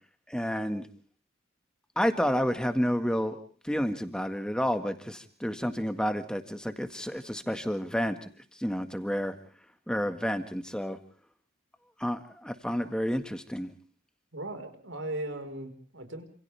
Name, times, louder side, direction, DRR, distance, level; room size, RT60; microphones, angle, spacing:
voice 1, 0.3-0.8 2.0-3.4 3.6-8.2 8.6-9.3 9.9-11.0 12.0-13.7, equal, 5° left, 7 dB, 1.9 m, -30 dB
voice 2, 14.3-16.2, right 1 dB, 80° right, 7 dB, 5.0 m, -37 dB
29.0 x 28.0 x 3.5 m, 0.43 s
head